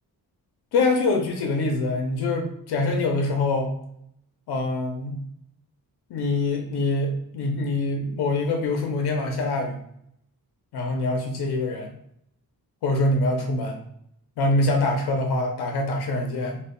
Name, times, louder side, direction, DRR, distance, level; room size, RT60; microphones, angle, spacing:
voice 1, 0.7-3.7 4.5-5.2 6.1-9.8 10.7-11.9 12.8-13.8 14.4-16.6, left 2 dB, 80° left, 2 dB, 0.6 m, -24 dB
2.2 x 2.1 x 3.6 m, 0.71 s
cardioid pair, 105°, 38 cm